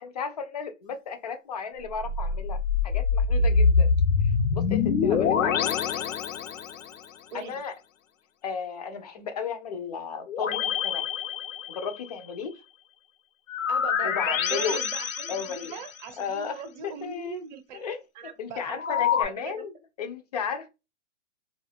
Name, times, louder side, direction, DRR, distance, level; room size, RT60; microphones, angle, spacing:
voice 1, 0.0-2.6 2.8-3.9 4.5-5.8 7.3-7.7 8.4-11.0 11.7-12.5 14.0-14.8 15.3-15.7 16.2-16.6 17.0-17.4 17.7-18.0 18.4-19.7 20.0-20.7, left 6 dB, 35° left, 0.4 m, -34 dB
sound 1, 1.9-7.0 10.3-12.1 13.5-16.1 18.8-19.2, left 5 dB, 90° left, 0.7 m, -25 dB
voice 2, 5.0-6.1 7.3-7.6 13.7-19.6, right 6 dB, 35° right, 0.7 m, -40 dB
2.4 x 2.2 x 3.3 m
hypercardioid pair, 150°, 39 cm